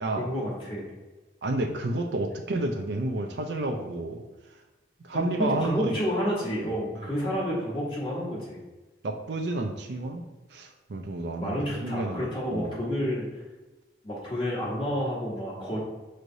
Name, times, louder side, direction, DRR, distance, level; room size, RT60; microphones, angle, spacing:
voice 1, 0.2-0.9 5.1-8.6 11.4-13.3 14.0-15.8, equal, 30° left, -6 dB, 1.1 m, -30 dB
voice 2, 1.4-4.2 5.1-6.0 6.6-6.7 7.2-7.3 9.0-10.2 10.5-12.8, right 2 dB, 70° right, 4 dB, 0.4 m, -30 dB
6.4 x 3.2 x 2.6 m, 1.2 s
head